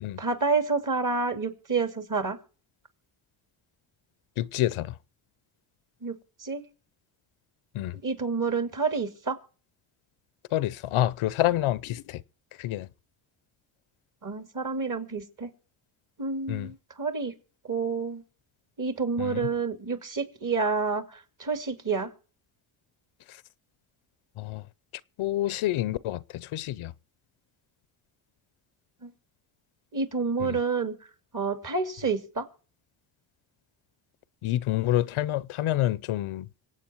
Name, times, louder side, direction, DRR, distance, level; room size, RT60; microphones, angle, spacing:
voice 1, 0.2-2.4 6.0-6.6 8.0-9.4 14.2-15.5 16.2-17.3 17.7-18.2 18.8-22.1 29.0-29.1 29.9-30.9 31.3-32.5, right 4 dB, 40° right, 2.8 m, -29 dB
voice 2, 4.4-4.9 7.7-8.0 10.5-12.2 12.6-12.9 16.5-16.7 19.2-19.5 23.3-23.4 24.4-24.6 25.2-26.9 30.4-30.6 34.4-36.5, left 14 dB, 80° left, 0.8 m, -28 dB
25.0 x 8.5 x 4.5 m
cardioid pair, 95°, 49 cm